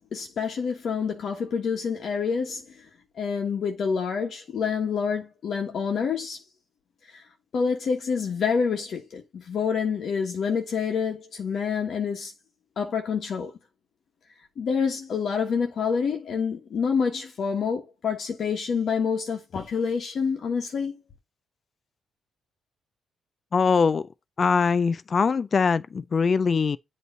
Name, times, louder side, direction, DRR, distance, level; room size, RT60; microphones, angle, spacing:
voice 1, 0.1-2.8 3.2-6.4 7.1-7.2 7.5-12.3 12.8-13.5 14.6-21.0, left 6 dB, 55° left, 1.3 m, -27 dB
voice 2, 23.5-24.0 24.4-26.8, left 5 dB, 40° left, 0.3 m, -22 dB
8.0 x 3.1 x 5.5 m
cardioid pair, 90°, 0 cm